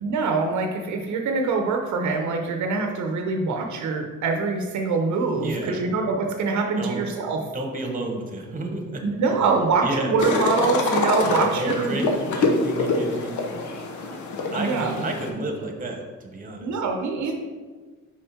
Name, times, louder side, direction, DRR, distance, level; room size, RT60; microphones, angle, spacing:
voice 1, 0.0-7.4 9.0-12.1 14.5-15.1 16.6-17.3, right 4 dB, 70° right, 3 dB, 0.8 m, -24 dB
voice 2, 5.3-5.8 6.8-7.0 7.5-9.0 9.3-9.5 9.8-10.1 11.2-13.6 14.5-16.8, right 2 dB, 25° right, 3 dB, 1.2 m, -31 dB
sound 1, 10.2-15.3, left 3 dB, 75° left, 1.0 m, -25 dB
5.6 x 5.0 x 4.2 m, 1.4 s
cardioid pair, 90°, 30 cm